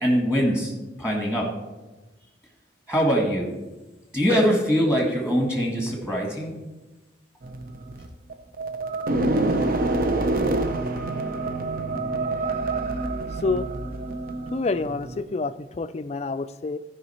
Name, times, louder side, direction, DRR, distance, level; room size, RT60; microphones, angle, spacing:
voice 1, 0.0-0.7 1.0-1.5 2.9-3.5 4.1-6.5, equal, 5° right, -1 dB, 1.6 m, -22 dB
sound 1, 7.4-15.2, right 2 dB, 45° right, 0.6 m, -27 dB
voice 2, 14.5-16.8, left 3 dB, 35° left, 12 dB, 0.4 m, -27 dB
14.5 x 5.0 x 4.3 m, 1.1 s
head